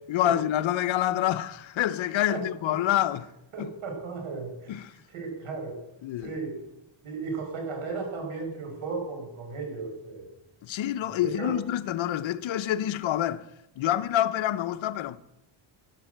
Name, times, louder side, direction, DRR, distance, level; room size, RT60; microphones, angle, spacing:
voice 1, 0.1-3.3 3.6-3.7 4.7-4.9 6.0-6.3 10.6-13.5 13.8-15.2, left 12 dB, 70° left, 0.9 m, -27 dB
voice 2, 2.3-2.7 3.5-5.8 6.2-6.6 7.0-10.3 11.0-11.6, right 4 dB, 80° right, 5.4 m, -35 dB
12.0 x 11.0 x 7.9 m
cardioid pair, 125°, 48 cm